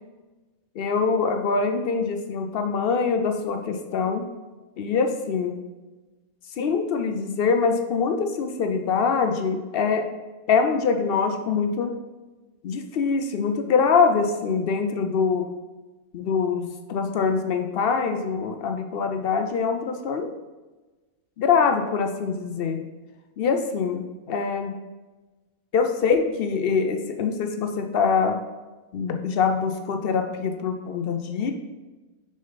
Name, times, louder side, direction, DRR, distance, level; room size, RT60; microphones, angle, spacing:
voice 1, 0.8-4.2 4.8-5.6 6.6-10.0 10.5-11.9 12.6-15.4 16.1-20.3 21.4-22.8 23.4-24.7 25.7-28.4 28.9-31.5, left 5 dB, 65° left, 5 dB, 0.6 m, -24 dB
6.3 x 5.3 x 3.9 m, 1.2 s
omnidirectional pair, 1.5 m